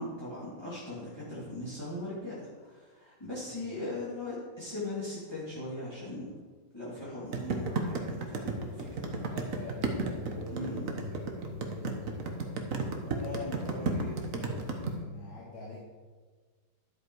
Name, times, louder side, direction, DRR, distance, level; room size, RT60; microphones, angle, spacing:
voice 1, 0.0-6.3 6.7-9.2 10.5-11.0 13.8-14.0, left 1 dB, 10° left, -9 dB, 2.6 m, -39 dB
sound 1, 7.3-14.9, right 4 dB, 50° right, 1.4 m, -32 dB
voice 2, 9.1-12.5 13.0-15.8, left 3 dB, 80° left, -4 dB, 2.3 m, -43 dB
11.5 x 8.0 x 4.7 m, 1.5 s
omnidirectional pair, 2.1 m